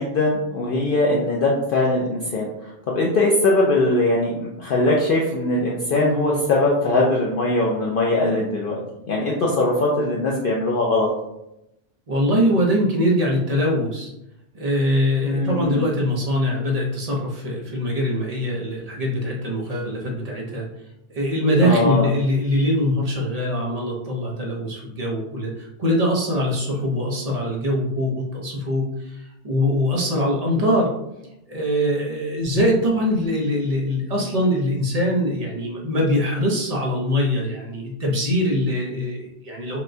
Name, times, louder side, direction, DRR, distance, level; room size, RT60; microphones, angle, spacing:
voice 1, 0.0-8.8 9.0-11.1 15.2-15.8 21.6-22.1, left 2 dB, 60° left, -3 dB, 0.7 m, -21 dB
voice 2, 12.1-14.1 14.5-20.7 21.1-30.9 31.5-39.8, equal, 40° right, -2 dB, 0.8 m, -22 dB
5.8 x 2.2 x 2.6 m, 0.85 s
omnidirectional pair, 1.2 m